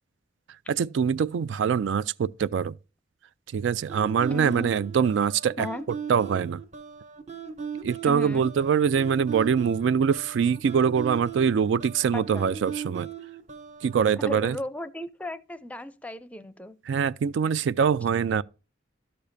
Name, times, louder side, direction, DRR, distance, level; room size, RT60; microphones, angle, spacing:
voice 1, 0.7-2.8 3.5-5.7 6.1-6.6 7.8-13.1 13.8-14.6 16.9-18.4, right 7 dB, 75° right, 0.3 m, -24 dB
sound 1, 3.9-14.0, right 7 dB, 40° right, 0.8 m, -38 dB
voice 2, 4.3-4.7 5.6-5.8 8.0-8.5 12.1-12.5 14.2-16.7, left 1 dB, 10° left, 0.5 m, -35 dB
12.5 x 6.8 x 2.6 m
head